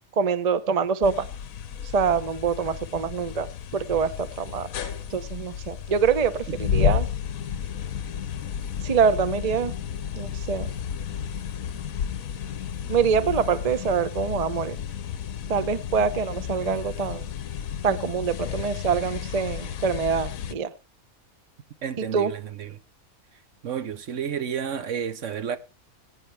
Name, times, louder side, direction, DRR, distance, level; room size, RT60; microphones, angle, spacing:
voice 1, 0.2-1.3 1.9-3.5 3.7-7.1 8.8-9.7 10.2-10.7 12.9-14.8 15.5-17.3 17.8-20.7 22.1-22.3, right 6 dB, 35° right, 0.6 m, -25 dB
sound 1, 1.0-20.5, left 8 dB, 70° left, 1.2 m, -32 dB
voice 2, 21.8-22.8 23.6-25.6, right 8 dB, 60° right, 1.1 m, -31 dB
21.5 x 9.2 x 3.3 m
omnidirectional pair, 1.5 m